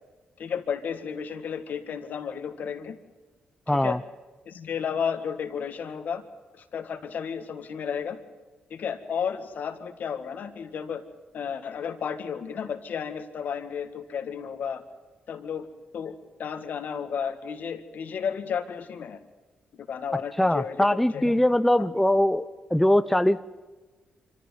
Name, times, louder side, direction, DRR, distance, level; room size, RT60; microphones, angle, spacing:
voice 1, 0.4-3.0 3.7-4.0 4.5-6.2 6.7-8.2 8.7-11.0 11.3-14.8 15.3-15.7 15.9-19.2 19.9-21.4 21.8-21.9, left 7 dB, 70° left, 8 dB, 2.0 m, -33 dB
voice 2, 3.7-4.0 20.4-22.4 22.7-23.4, left 1 dB, 5° left, 11 dB, 0.7 m, -21 dB
26.0 x 14.5 x 9.4 m, 1.2 s
cardioid pair, 85°, 3 cm